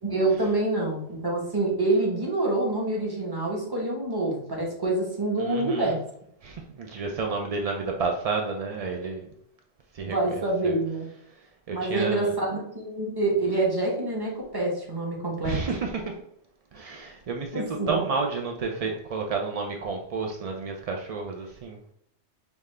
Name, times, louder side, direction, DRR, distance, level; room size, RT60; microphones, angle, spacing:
voice 1, 0.0-6.0 10.0-11.1 11.7-15.6 17.5-18.0, right 2 dB, 20° right, -2 dB, 1.0 m, -26 dB
voice 2, 5.4-5.9 6.4-9.3 9.9-10.3 10.6-10.8 11.7-12.3 15.4-16.2 16.7-21.8, right 4 dB, 65° right, 2 dB, 0.3 m, -30 dB
5.3 x 2.4 x 3.2 m, 0.71 s
omnidirectional pair, 1.2 m